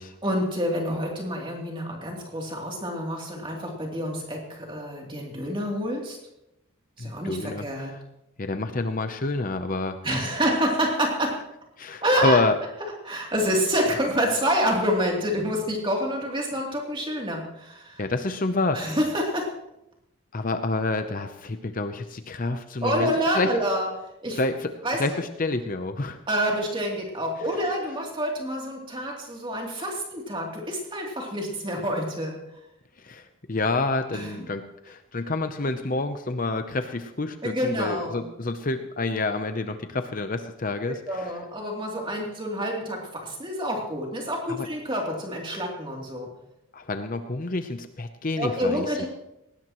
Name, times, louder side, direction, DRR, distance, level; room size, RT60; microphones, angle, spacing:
voice 1, 0.2-6.2 7.0-8.0 10.0-11.5 12.0-12.4 13.0-18.0 18.7-19.6 22.8-24.4 24.8-25.0 26.3-32.4 34.1-34.4 37.4-38.3 41.1-46.3 48.4-49.1, equal, 25° right, -1 dB, 3.0 m, -27 dB
voice 2, 7.0-7.9 8.4-10.0 11.8-12.5 18.0-19.0 20.3-23.5 24.4-24.7 25.0-26.2 33.0-41.3 44.5-44.7 46.7-49.1, left 2 dB, 40° left, 8 dB, 0.7 m, -28 dB
19.5 x 17.5 x 3.1 m, 0.85 s
head